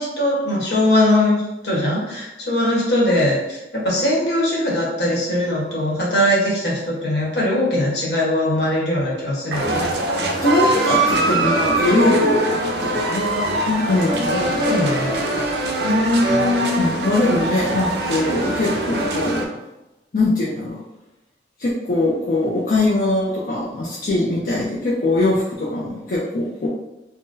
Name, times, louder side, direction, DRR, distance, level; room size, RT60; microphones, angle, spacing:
voice 1, 0.0-9.9 14.3-15.2 15.8-16.9, left 1 dB, 70° left, -5 dB, 1.1 m, -20 dB
sound 1, 9.5-19.4, right 1 dB, 65° right, 0.5 m, -22 dB
voice 2, 10.4-14.6 16.8-19.5 20.1-20.8 21.6-26.7, left 2 dB, 50° left, -6 dB, 0.5 m, -22 dB
3.7 x 2.1 x 2.6 m, 0.98 s
head